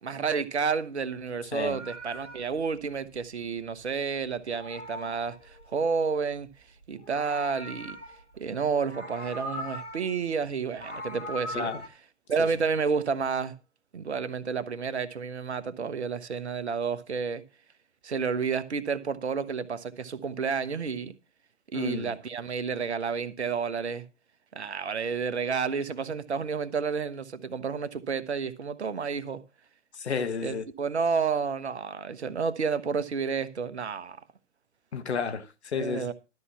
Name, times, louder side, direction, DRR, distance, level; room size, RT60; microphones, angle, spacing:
voice 1, 0.0-6.5 6.9-8.0 8.3-11.7 12.3-13.5 13.9-17.4 18.0-21.1 21.7-24.0 24.5-29.4 30.4-34.2 35.7-36.1, right 5 dB, 70° right, 1.1 m, -30 dB
Meow, 1.3-4.0 4.3-6.0 6.8-8.4 8.7-10.2 10.5-11.9, equal, 90° left, 3.2 m, -41 dB
voice 2, 21.7-22.1 29.9-30.6 34.9-36.1, left 5 dB, 65° left, 1.4 m, -32 dB
12.5 x 5.6 x 5.8 m
figure-of-eight pair, 120°, 35 cm